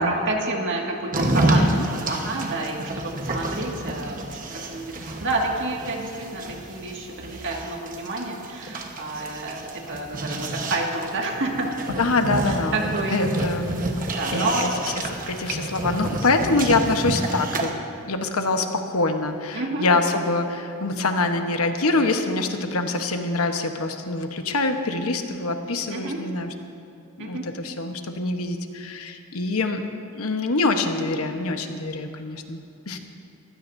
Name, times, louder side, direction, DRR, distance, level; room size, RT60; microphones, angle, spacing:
voice 1, 0.0-12.1 12.5-13.9 14.1-14.7 19.5-19.9 25.9-26.2 27.2-27.5, right 2 dB, 60° right, 0 dB, 2.0 m, -29 dB
sound 1, 1.1-17.7, right 2 dB, 40° right, 1.2 m, -29 dB
voice 2, 12.0-12.8 13.1-13.8 14.3-14.7 15.0-26.5 27.3-29.8 30.1-32.6 32.9-33.0, left 3 dB, 75° left, 5 dB, 1.1 m, -25 dB
22.5 x 16.0 x 2.7 m, 2.7 s
head